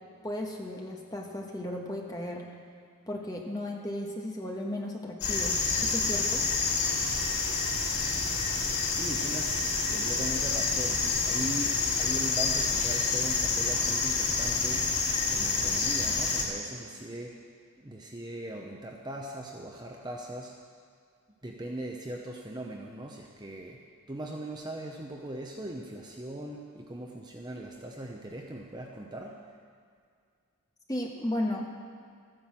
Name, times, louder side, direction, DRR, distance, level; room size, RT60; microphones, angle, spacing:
voice 1, 0.2-2.4 3.1-6.4 30.9-31.7, left 1 dB, 15° left, 0 dB, 1.4 m, -35 dB
sound 1, 5.2-16.5, left 4 dB, 90° left, 3.6 m, -28 dB
voice 2, 8.6-9.6 9.9-14.9 15.3-17.4 17.8-20.6 21.4-29.5, right 1 dB, 20° right, 1 dB, 0.8 m, -40 dB
13.5 x 9.8 x 7.5 m, 2.1 s
head